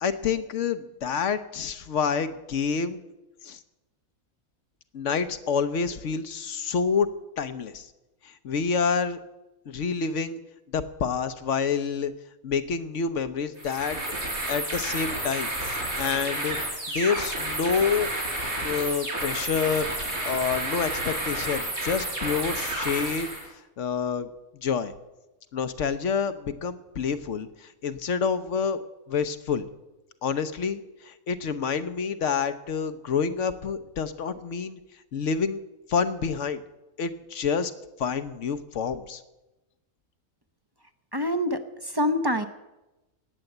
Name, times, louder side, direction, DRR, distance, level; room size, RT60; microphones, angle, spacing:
voice 1, 0.0-3.0 3.4-3.6 4.9-7.1 7.4-7.9 8.2-9.2 9.7-10.4 10.7-12.1 12.4-14.0 14.5-18.1 18.6-23.3 23.8-24.3 24.6-24.9 25.5-28.8 29.1-29.7 30.2-34.8 35.1-35.6 35.9-36.6 37.0-37.7 38.0-39.2, left 6 dB, 65° left, 12 dB, 1.2 m, -28 dB
sound 1, 13.6-23.5, right 1 dB, 85° right, 5.8 m, -31 dB
voice 2, 41.1-41.6 41.9-42.5, left 1 dB, 25° right, 9 dB, 0.6 m, -25 dB
19.0 x 8.4 x 7.9 m, 1.0 s
omnidirectional pair, 1.4 m